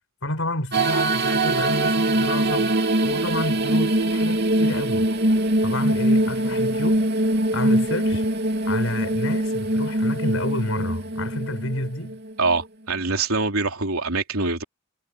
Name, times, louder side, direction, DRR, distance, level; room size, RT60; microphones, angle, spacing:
voice 1, 0.2-5.1 5.6-7.1 7.5-8.2 8.7-12.2, left 1 dB, 65° left, 6.2 m, -30 dB
sound 1, 0.7-12.5, right 1 dB, 50° right, 3.4 m, -22 dB
voice 2, 12.4-14.6, right 3 dB, 80° right, 3.5 m, -24 dB
head